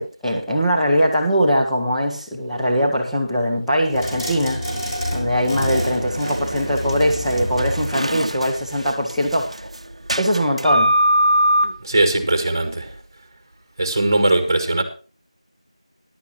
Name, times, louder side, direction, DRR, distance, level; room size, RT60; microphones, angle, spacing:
voice 1, 0.0-4.6 5.1-9.7 10.2-10.9, equal, ahead, -12 dB, 0.5 m, -21 dB
sound 1, 3.9-9.0, equal, 20° left, 4.6 m, -28 dB
sound 2, 5.6-13.0, equal, 65° right, 0.7 m, -23 dB
voice 2, 11.6-13.0 13.8-14.8, right 2 dB, 25° right, 7 dB, 1.8 m, -20 dB
15.0 x 11.0 x 3.1 m, 0.37 s
figure-of-eight pair, 170°, 4 cm